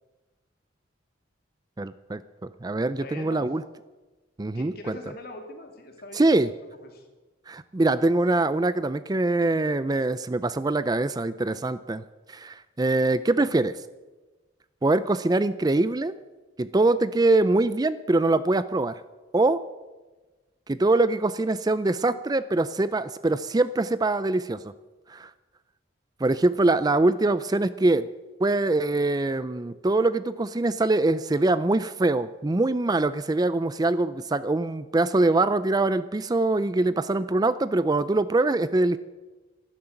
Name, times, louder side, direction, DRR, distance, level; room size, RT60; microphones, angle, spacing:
voice 1, 1.8-3.6 4.4-4.7 6.1-6.5 7.5-12.0 12.3-13.8 14.8-16.1 16.6-19.0 19.3-19.6 20.7-24.7 25.1-25.3 26.2-28.1 28.4-39.0, right 2 dB, 20° right, 15 dB, 0.4 m, -23 dB
voice 2, 2.9-3.5 4.5-6.3 6.8-7.1, left 1 dB, 50° left, 3 dB, 2.8 m, -42 dB
13.0 x 11.5 x 8.9 m, 1.2 s
head